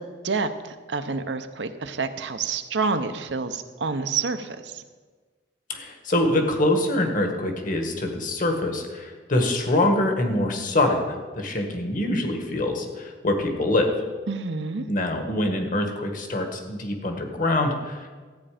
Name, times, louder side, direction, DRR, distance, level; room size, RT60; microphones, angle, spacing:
voice 1, 0.0-4.8 14.3-14.9, right 4 dB, 85° right, 8 dB, 0.8 m, -28 dB
voice 2, 5.7-13.9 14.8-18.1, left 1 dB, 50° left, 4 dB, 1.6 m, -24 dB
14.0 x 8.8 x 5.0 m, 1.4 s
head